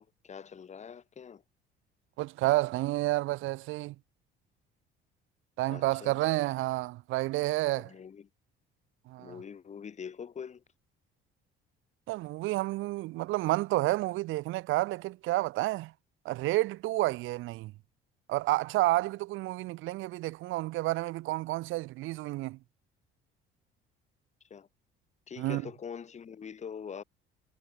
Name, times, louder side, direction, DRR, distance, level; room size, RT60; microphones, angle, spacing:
voice 1, 0.0-1.4 5.7-6.2 7.8-8.3 9.2-10.6 24.5-24.7 25.3-27.0, left 7 dB, 35° left, 7.3 m, -44 dB
voice 2, 2.2-3.9 5.6-7.9 9.1-9.3 12.1-15.9 16.2-17.7 18.3-22.6 25.4-25.6, right 18 dB, 75° right, 1.3 m, -30 dB
cardioid pair, 130°, 20 cm